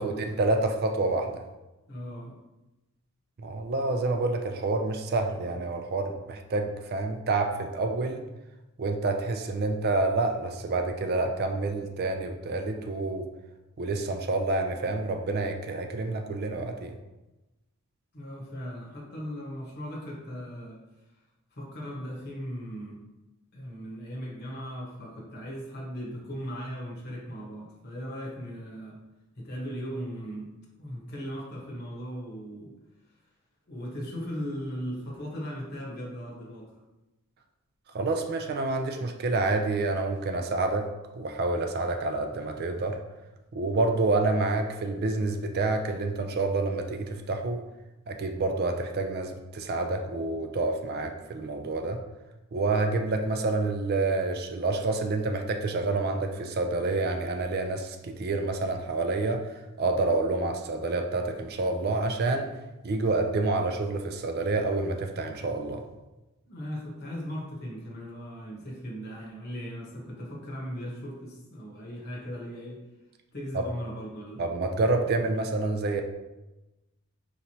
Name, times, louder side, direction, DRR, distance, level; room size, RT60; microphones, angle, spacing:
voice 1, 0.0-1.4 3.4-8.2 8.8-13.3 13.8-16.9 37.9-40.9 41.2-43.0 43.5-47.6 48.1-52.0 52.5-62.5 62.8-65.8 73.5-73.7 74.4-76.0, right 3 dB, 45° right, 5 dB, 0.4 m, -28 dB
voice 2, 1.9-2.4 18.1-20.8 21.5-23.0 23.5-29.0 29.4-30.5 30.8-32.7 33.7-36.7 66.5-72.8 73.3-74.4 74.8-75.0, equal, 45° left, -2 dB, 1.0 m, -38 dB
5.2 x 3.0 x 2.8 m, 1.0 s
head